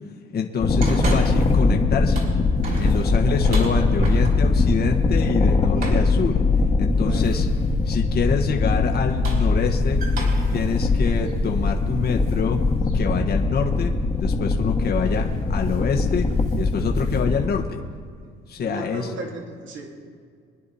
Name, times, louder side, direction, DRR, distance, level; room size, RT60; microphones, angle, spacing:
voice 1, 0.3-2.2 2.8-6.4 6.8-7.5 7.8-10.0 10.5-12.6 12.9-13.9 14.2-16.3 16.6-17.8 18.5-19.1, left 6 dB, 50° left, 2 dB, 1.4 m, -26 dB
sound 1, 0.6-17.5, left 3 dB, 30° left, 1.5 m, -21 dB
sound 2, 0.8-1.6 2.0-4.7 5.8-6.2 7.2-7.7 8.9-12.4 12.8-12.9 14.5-14.7 15.0-15.3 15.6-15.9 16.2-17.2, right 2 dB, 50° right, 4.4 m, -32 dB
voice 2, 6.9-7.4 18.2-19.9, right 3 dB, 65° right, 0 dB, 3.0 m, -36 dB
25.0 x 10.0 x 4.2 m, 2.1 s
cardioid pair, 90°, 21 cm